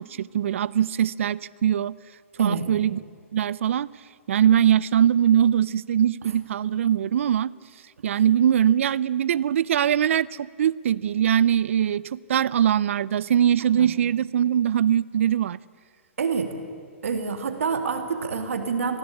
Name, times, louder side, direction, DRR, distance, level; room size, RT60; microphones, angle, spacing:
voice 1, 0.0-1.9 2.4-3.0 3.3-3.9 4.3-7.5 8.0-15.6, right 10 dB, 70° right, 22 dB, 0.5 m, -22 dB
voice 2, 2.4-2.7 13.7-13.9 16.2-16.5 17.0-19.0, right 5 dB, 90° right, 6 dB, 2.6 m, -27 dB
20.5 x 16.0 x 8.5 m, 2.1 s
hypercardioid pair, 150°, 7 cm